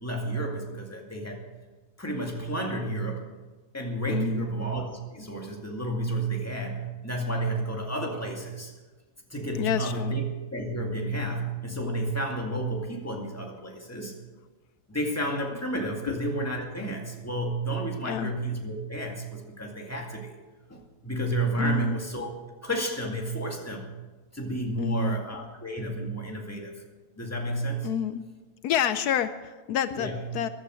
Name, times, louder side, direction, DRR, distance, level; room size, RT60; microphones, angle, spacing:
voice 1, 0.0-1.4 2.0-3.2 3.7-8.7 9.3-10.2 10.5-14.1 14.9-20.3 20.7-22.3 22.6-23.9 24.3-26.7 27.2-27.9 29.9-30.2, right 1 dB, 10° left, 0 dB, 2.1 m, -31 dB
voice 2, 4.1-4.5 9.5-10.1 16.1-16.2 18.0-18.3 21.6-22.0 24.8-25.2 27.8-28.2 28.6-30.5, left 10 dB, 80° left, 12 dB, 1.1 m, -28 dB
15.0 x 11.5 x 6.3 m, 1.3 s
omnidirectional pair, 1.7 m